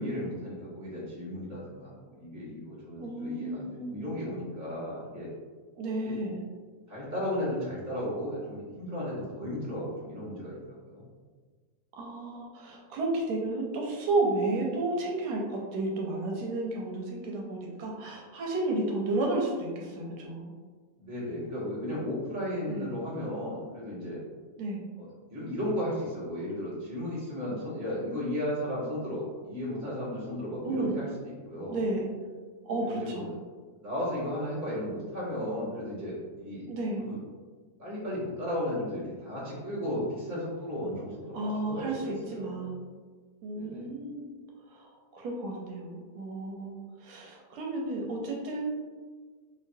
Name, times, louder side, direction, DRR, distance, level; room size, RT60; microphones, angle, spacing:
voice 1, 0.0-5.3 6.0-6.2 6.9-11.0 21.0-24.2 25.0-31.8 32.8-33.4 33.8-36.7 37.0-37.2 37.8-42.6 43.5-43.9, left 1 dB, 15° right, -9 dB, 0.8 m, -35 dB
voice 2, 3.0-4.0 5.7-6.4 11.9-20.5 22.7-22.8 24.6-24.8 30.6-31.0 31.7-32.0 32.6-33.2 36.7-37.0 41.3-42.8 43.4-44.2 45.1-48.7, right 2 dB, 85° right, -2 dB, 1.2 m, -32 dB
2.9 x 2.6 x 2.6 m, 1.5 s
omnidirectional pair, 1.7 m